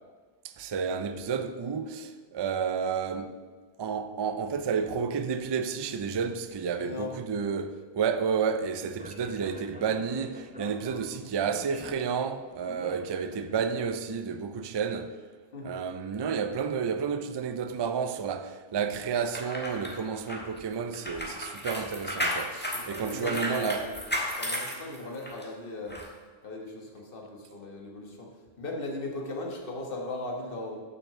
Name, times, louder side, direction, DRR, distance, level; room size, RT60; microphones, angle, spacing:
voice 1, 0.4-3.4 3.8-15.2 15.6-23.9, right 6 dB, 40° right, 0.3 m, -31 dB
voice 2, 6.8-7.1 15.5-15.8 22.7-23.9 24.4-26.0 26.4-30.8, left 2 dB, 60° left, 1.5 m, -38 dB
Speech, 8.8-13.9, equal, 10° right, 0.9 m, -46 dB
sound 1, 19.2-25.4 25.9-26.1, equal, 10° left, 1.3 m, -34 dB
6.9 x 6.1 x 6.6 m
omnidirectional pair, 1.0 m